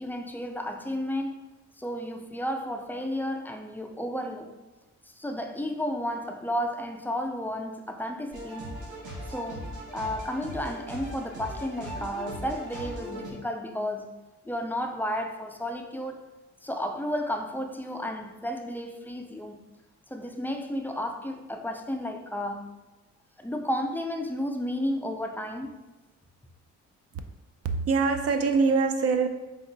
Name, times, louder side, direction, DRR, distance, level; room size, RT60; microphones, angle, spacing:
voice 1, 0.0-1.4 1.8-4.5 5.1-8.7 9.3-9.7 9.9-14.2 14.4-16.2 16.6-19.6 20.1-22.7 23.4-25.8, equal, 5° left, 0.3 m, -32 dB
sound 1, 8.3-13.3, equal, 75° right, 1.3 m, -39 dB
voice 2, 27.6-29.3, right 4 dB, 50° right, 0.5 m, -23 dB
3.9 x 2.6 x 3.9 m
cardioid pair, 90°, 30 cm